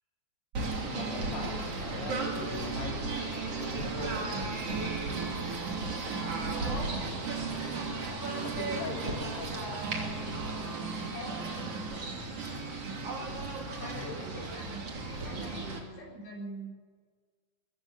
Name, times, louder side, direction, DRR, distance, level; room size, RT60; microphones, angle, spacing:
Singing / Bird, 0.5-15.8, right 3 dB, 40° right, 3.6 m, -35 dB
voice 1, 0.9-4.5 8.4-9.9 13.1-13.5 13.8-14.2, left 4 dB, 80° left, 1 dB, 4.9 m, -42 dB
voice 2, 6.6-7.2 7.5-7.9 11.1-11.6 13.8-16.7, equal, 55° left, 0 dB, 8.3 m, -44 dB
22.0 x 16.0 x 8.3 m, 1.5 s
omnidirectional pair, 4.6 m